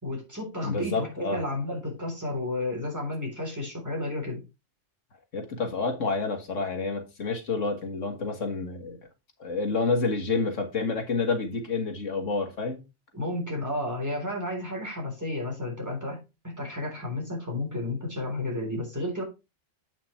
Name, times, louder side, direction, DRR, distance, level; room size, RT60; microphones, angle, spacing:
voice 1, 0.0-4.4 13.1-16.2 16.4-19.2, left 1 dB, 15° right, 3.7 m, -32 dB
voice 2, 0.6-1.4 5.3-9.0 9.4-12.8, left 4 dB, 90° left, 2.1 m, -29 dB
8.6 x 5.8 x 4.3 m
omnidirectional pair, 1.2 m